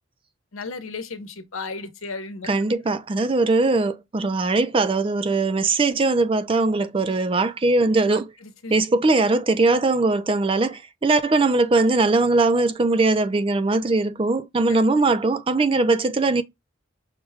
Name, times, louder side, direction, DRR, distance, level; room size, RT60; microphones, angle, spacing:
voice 1, 0.5-2.5 8.1-8.7, left 3 dB, 80° left, 1.0 m, -35 dB
voice 2, 2.5-8.3 8.7-16.4, right 3 dB, 25° right, 0.4 m, -20 dB
6.3 x 2.2 x 3.4 m
head